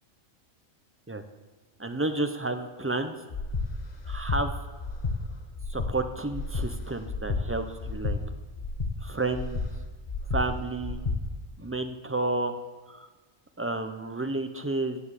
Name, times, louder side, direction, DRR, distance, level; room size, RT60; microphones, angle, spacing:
voice 1, 1.8-3.2 4.0-4.5 5.7-8.2 9.0-9.6 10.3-11.0 11.6-12.6 12.9-13.1 13.6-15.0, right 2 dB, 20° right, 7 dB, 0.4 m, -31 dB
Breathing, 3.3-3.7 4.0-4.4 4.8-5.2 5.5-5.9 6.3-6.7 7.1-7.4 7.8-8.2 8.6-8.9 9.3-9.7 10.1-10.4 10.8-11.2, left 4 dB, 35° left, 1.1 m, -30 dB
11.0 x 7.6 x 8.1 m, 1.3 s
omnidirectional pair, 1.3 m